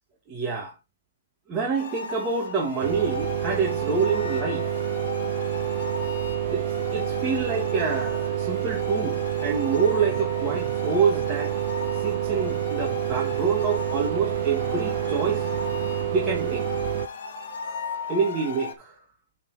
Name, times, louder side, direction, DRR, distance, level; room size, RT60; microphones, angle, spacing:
voice 1, 0.3-0.7 1.5-4.9 6.5-6.6 6.9-11.6 11.9-15.5 16.1-16.6 18.1-19.0, right 5 dB, 20° right, 1.7 m, -27 dB
sound 1, 1.8-18.8, left 5 dB, 65° left, 1.4 m, -37 dB
sound 2, 2.8-17.1, right 11 dB, 50° right, 0.4 m, -28 dB
8.6 x 4.1 x 4.0 m
hypercardioid pair, 150°, 0 cm